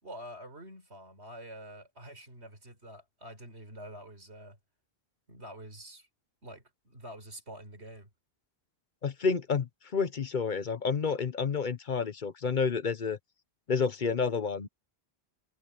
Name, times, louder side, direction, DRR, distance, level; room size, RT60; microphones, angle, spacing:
voice 1, 0.0-4.6 5.3-6.1 6.4-8.1, equal, 90° right, 4.8 m, -47 dB
voice 2, 9.0-13.2 13.7-14.7, left 5 dB, 50° left, 0.9 m, -30 dB
omnidirectional pair, 1.1 m